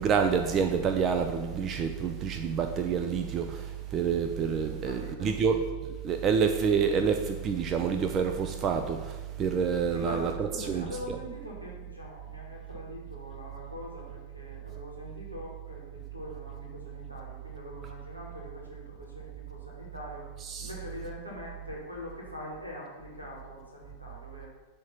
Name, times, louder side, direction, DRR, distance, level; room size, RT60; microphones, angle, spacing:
voice 1, 0.0-5.6 6.0-10.3 10.7-11.2 20.5-20.7, right 6 dB, 30° right, 6 dB, 0.6 m, -28 dB
voice 2, 4.7-5.3 9.9-20.3 20.6-24.5, left 1 dB, 85° right, -2 dB, 2.2 m, -43 dB
10.5 x 3.6 x 5.8 m, 1.2 s
figure-of-eight pair, 90°, 0 cm